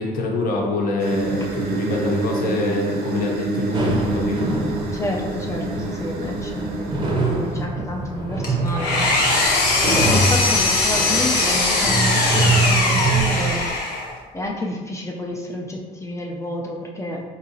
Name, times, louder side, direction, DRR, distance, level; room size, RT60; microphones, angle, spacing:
voice 1, 0.0-4.5, left 2 dB, 60° left, -1 dB, 0.8 m, -25 dB
sound 1, 1.0-7.7, right 2 dB, 75° right, 0.7 m, -27 dB
sound 2, 3.7-13.7, right 3 dB, 25° right, 0.6 m, -25 dB
voice 2, 4.9-13.7 14.3-17.2, left 1 dB, 15° left, -1 dB, 0.4 m, -30 dB
Engine, 8.4-14.2, left 3 dB, 85° left, 0.9 m, -20 dB
4.0 x 2.8 x 2.7 m, 1.3 s
cardioid pair, 110°, 17 cm